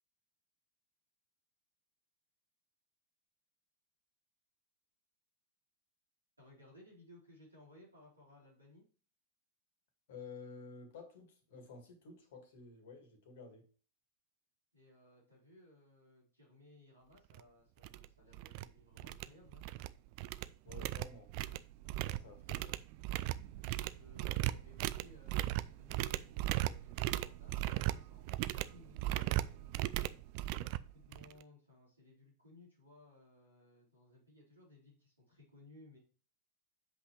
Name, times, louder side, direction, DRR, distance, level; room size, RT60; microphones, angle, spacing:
voice 1, 6.4-8.8 14.7-19.6 23.9-29.8 30.5-36.0, left 2 dB, 80° right, 4.3 m, -61 dB
voice 2, 10.1-13.7 20.6-21.3 22.0-22.8, left 4 dB, 55° left, 2.1 m, -52 dB
sound 1, 17.3-17.4 17.8-18.0 18.3-18.6 19.0-19.9 20.2-31.4, right 16 dB, 45° right, 0.4 m, -37 dB
7.9 x 5.6 x 3.2 m
figure-of-eight pair, 90°, 0 cm